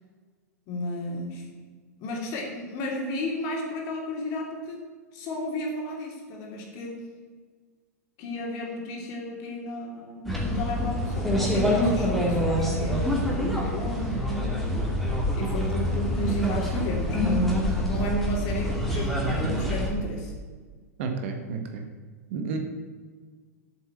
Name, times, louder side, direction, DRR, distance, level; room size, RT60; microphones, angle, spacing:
voice 1, 0.7-1.4 2.0-4.8 5.1-7.0 8.2-14.7 15.3-20.3, equal, 40° left, -1 dB, 3.2 m, -33 dB
sound 1, 10.2-19.9, left 1 dB, ahead, 2.5 m, -26 dB
voice 2, 21.0-21.8 22.3-22.6, right 4 dB, 50° right, 5 dB, 1.6 m, -31 dB
8.0 x 7.4 x 8.6 m, 1.5 s
figure-of-eight pair, 95°, 9 cm